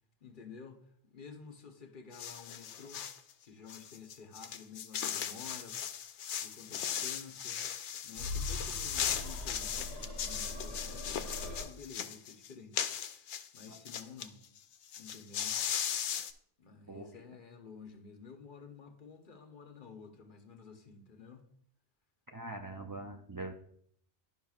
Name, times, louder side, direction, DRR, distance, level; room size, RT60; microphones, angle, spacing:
voice 1, 0.2-3.1 3.4-5.8 6.4-7.6 8.0-14.4 15.0-15.6 16.6-21.5, left 5 dB, 50° left, 1.0 m, -52 dB
sound 1, 2.1-3.2 3.7-14.3 14.6-14.7 14.9-16.3, left 9 dB, 80° left, 0.9 m, -38 dB
sound 2, 8.1-11.6, left 2 dB, 50° right, 2.3 m, -41 dB
voice 2, 22.3-23.5, right 2 dB, 35° right, 0.3 m, -43 dB
12.0 x 5.6 x 2.4 m
omnidirectional pair, 1.2 m